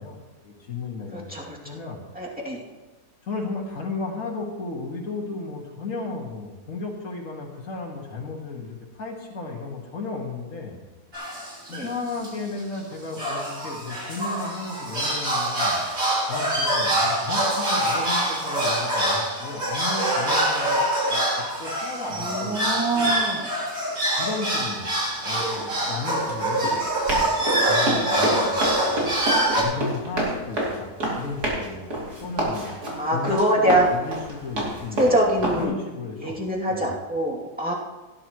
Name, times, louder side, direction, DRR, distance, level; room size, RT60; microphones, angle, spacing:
voice 1, 0.0-2.0 3.2-10.8 11.7-15.8 16.3-20.8 21.1-22.6 22.9-23.2 24.2-24.9 25.2-26.7 27.1-27.4 27.6-29.1 29.5-32.7 33.1-36.4 36.7-36.9, left 3 dB, 55° left, -2 dB, 2.2 m, -34 dB
voice 2, 1.1-1.6 2.1-2.6 11.7-11.9 22.1-23.4 33.0-33.9 35.0-35.7 36.2-37.7, right 1 dB, 5° right, -5 dB, 2.6 m, -24 dB
sound 1, 11.1-11.9 12.2-12.3 12.6-12.8 13.1-29.6, right 1 dB, 60° right, 3.7 m, -25 dB
Run, 25.1-35.6, right 1 dB, 85° right, 3.5 m, -29 dB
17.0 x 11.0 x 3.1 m, 1.2 s
omnidirectional pair, 1.6 m